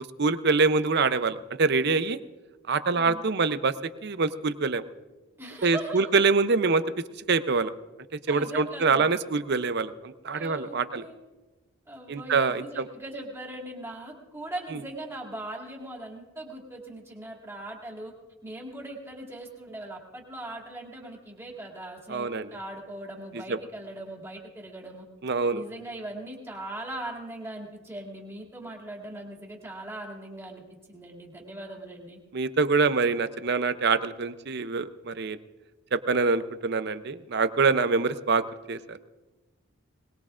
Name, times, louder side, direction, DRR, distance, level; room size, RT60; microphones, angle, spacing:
voice 1, 0.0-2.2 2.7-3.7 4.0-4.8 5.6-6.8 7.3-7.7 8.3-11.0 12.1-12.8 22.1-22.5 23.3-23.6 25.2-25.6 32.3-35.4 35.9-39.0, right 4 dB, 50° right, 12 dB, 0.6 m, -25 dB
voice 2, 2.9-3.2 5.4-6.1 8.3-9.1 10.3-11.2 11.9-18.1 18.4-25.0 25.5-32.2, right 1 dB, 10° right, -1 dB, 2.4 m, -40 dB
21.5 x 20.0 x 2.5 m, 1.2 s
head